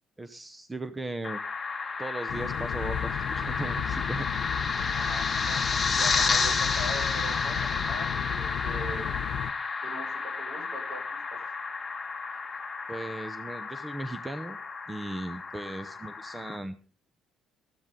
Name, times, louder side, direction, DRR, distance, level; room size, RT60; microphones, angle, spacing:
voice 1, 0.2-1.4 2.0-4.3 12.9-14.6 14.9-16.8, right 1 dB, 15° right, 12 dB, 0.7 m, -37 dB
sound 1, 1.2-16.6, left 4 dB, 20° left, 1.5 m, -31 dB
sound 2, 2.3-9.5, left 10 dB, 65° left, 0.6 m, -34 dB
voice 2, 4.9-9.1 9.8-11.0 11.3-11.4, right 1 dB, 60° right, 5 dB, 5.8 m, -41 dB
14.0 x 13.0 x 3.7 m, 0.36 s
cardioid pair, 115°, 0 cm